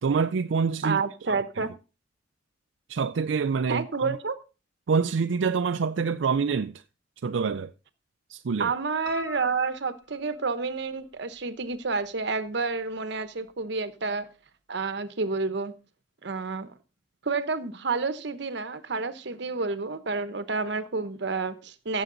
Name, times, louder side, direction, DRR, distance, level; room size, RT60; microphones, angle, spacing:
voice 1, 0.0-1.0 1.3-1.7 2.9-4.2 4.9-6.8 7.2-7.7 8.3-8.7, right 5 dB, 85° right, 0.4 m, -26 dB
voice 2, 0.8-1.7 3.7-4.4 8.6-14.3 14.7-15.7 16.2-16.7 17.2-22.0, right 4 dB, 65° right, 1.0 m, -29 dB
Piano, 9.1-11.0 11.4-12.3 12.6-12.7 13.1-13.2 13.5-13.6, left 4 dB, 85° left, 1.9 m, -44 dB
15.0 x 7.2 x 3.9 m
head